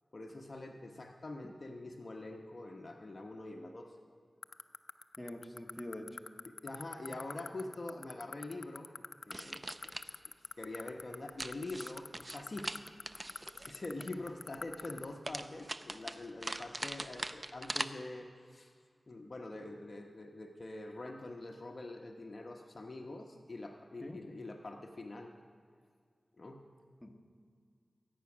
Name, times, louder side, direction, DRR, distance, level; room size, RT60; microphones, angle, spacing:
voice 1, 0.1-3.9 6.4-8.9 9.3-9.9 10.6-12.7 13.7-18.7 19.1-25.3 26.4-26.6, left 2 dB, 50° left, 2 dB, 1.0 m, -45 dB
sound 1, 4.4-15.0, left 4 dB, 80° left, 0.5 m, -42 dB
voice 2, 5.2-6.2 24.0-24.2 27.0-27.2, left 1 dB, 15° left, 2 dB, 1.6 m, -45 dB
open close small box with caffeine pills, 9.3-10.2 11.4-14.1 15.3-17.9, right 2 dB, 30° right, 0.6 m, -42 dB
22.0 x 9.6 x 6.1 m, 2.1 s
wide cardioid pair, 65°, 0 cm